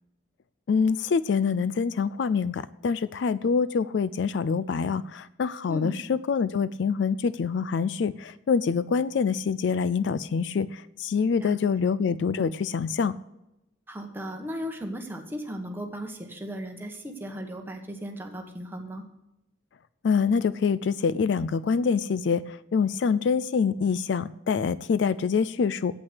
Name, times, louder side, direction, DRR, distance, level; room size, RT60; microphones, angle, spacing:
voice 1, 0.7-13.1 20.0-26.0, left 5 dB, 65° left, 17 dB, 0.3 m, -25 dB
voice 2, 5.7-6.0 11.4-11.8 13.9-19.0, equal, 10° right, 3 dB, 1.3 m, -36 dB
8.6 x 8.3 x 8.1 m, 0.89 s
head